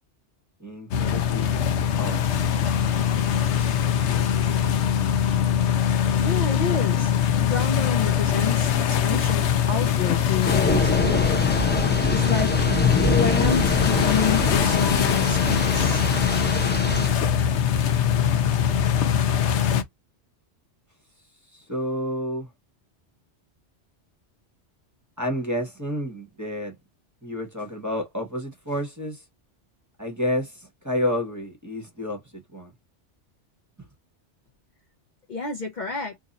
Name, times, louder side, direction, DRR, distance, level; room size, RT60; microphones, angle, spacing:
voice 1, 0.6-1.6 2.0-2.2 21.5-22.5 25.2-26.7 27.2-29.2 30.0-32.7 33.8-33.9, left 1 dB, 15° right, 1.0 m, -30 dB
sound 1, 0.9-19.8, left 8 dB, 75° left, 0.9 m, -22 dB
voice 2, 6.2-7.1 7.4-11.4 12.1-12.5 13.0-16.0 35.3-36.1, left 5 dB, 45° left, 0.7 m, -29 dB
sound 2, 10.4-17.1, left 3 dB, 15° left, 0.5 m, -25 dB
2.9 x 2.6 x 3.9 m
omnidirectional pair, 1.2 m